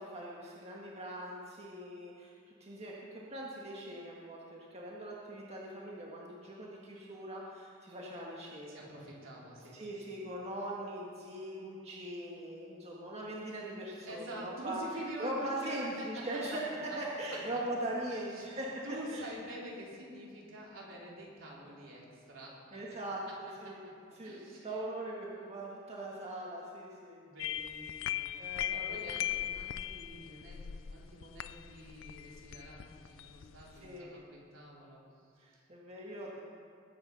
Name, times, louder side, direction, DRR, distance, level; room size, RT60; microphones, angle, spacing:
voice 1, 0.0-8.9 9.7-14.8 15.2-16.7 17.0-18.8 19.1-19.2 22.7-23.8 24.2-27.2 28.4-29.3 33.8-34.1 35.4-36.4, right 1 dB, 30° right, -4 dB, 1.7 m, -41 dB
voice 2, 8.7-9.8 14.0-16.6 16.9-17.6 18.1-22.9 23.3-23.4 23.6-24.9 27.2-35.6, equal, 70° right, -4 dB, 4.0 m, -47 dB
sound 1, 27.4-34.0, left 11 dB, 70° left, 0.4 m, -39 dB
20.0 x 9.4 x 5.5 m, 2.4 s
head